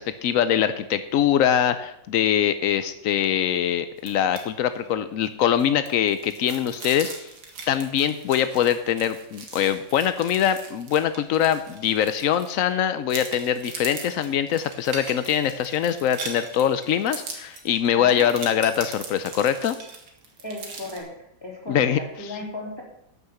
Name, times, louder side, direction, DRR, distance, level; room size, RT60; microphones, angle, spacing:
voice 1, 0.0-7.3 7.7-19.8 21.7-22.4, left 9 dB, 80° left, 11 dB, 0.7 m, -23 dB
sound 1, 4.0-4.4 4.7-4.9 5.2-12.7 13.1-21.0, right 4 dB, 80° right, 2.6 m, -40 dB
voice 2, 18.0-18.3 20.4-21.1 21.4-22.8, left 2 dB, 10° left, -2 dB, 3.3 m, -35 dB
12.0 x 6.5 x 7.0 m, 0.80 s
omnidirectional pair, 2.1 m